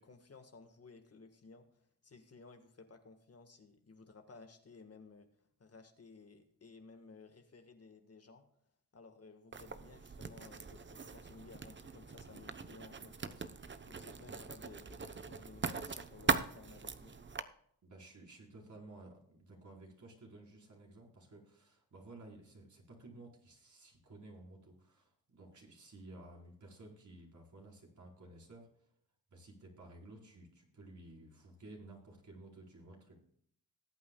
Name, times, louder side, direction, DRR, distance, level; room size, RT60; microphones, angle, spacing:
voice 1, 0.0-5.3 5.6-8.5 8.9-17.1, left 4 dB, 40° left, 6 dB, 1.6 m, -57 dB
Writing, 9.5-17.4, right 5 dB, 30° right, 0.9 m, -40 dB
voice 2, 17.8-28.9 29.3-33.2, right 2 dB, 50° right, -1 dB, 4.5 m, -55 dB
19.5 x 8.4 x 2.3 m, 0.65 s
cardioid pair, 65°, 39 cm